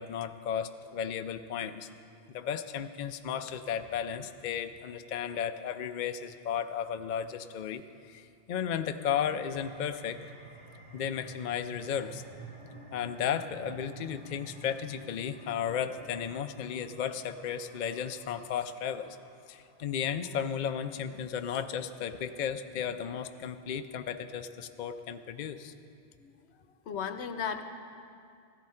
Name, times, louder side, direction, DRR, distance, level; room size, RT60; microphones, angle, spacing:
voice 1, 0.0-1.9 2.3-10.2 10.9-12.2 12.9-19.2 19.5-25.7, left 8 dB, 55° left, 8 dB, 0.6 m, -34 dB
sound 1, 8.6-19.8, right 2 dB, 85° right, 2.9 m, -51 dB
voice 2, 26.9-27.6, left 7 dB, 80° left, 8 dB, 1.1 m, -35 dB
15.5 x 14.0 x 4.3 m, 2.5 s
omnidirectional pair, 1.1 m